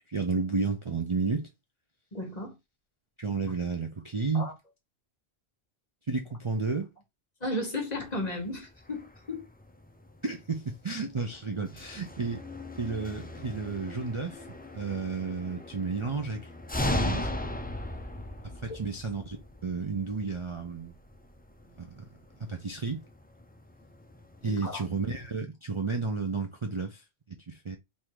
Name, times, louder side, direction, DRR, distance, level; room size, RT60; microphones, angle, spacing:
voice 1, 0.1-1.5 3.2-4.5 6.1-6.9 10.2-12.4 12.8-14.5 14.7-16.5 16.8-17.3 18.6-19.4 19.6-20.9 21.8-22.0 22.4-23.0 24.4-27.8, right 4 dB, 35° right, 0.6 m, -32 dB
voice 2, 2.1-2.5 4.3-4.5 7.4-9.5 18.7-18.8 24.4-24.8, left 1 dB, 40° left, 1.5 m, -34 dB
sound 1, 7.9-25.4, left 1 dB, 15° left, 0.3 m, -39 dB
3.7 x 2.7 x 4.7 m
omnidirectional pair, 1.1 m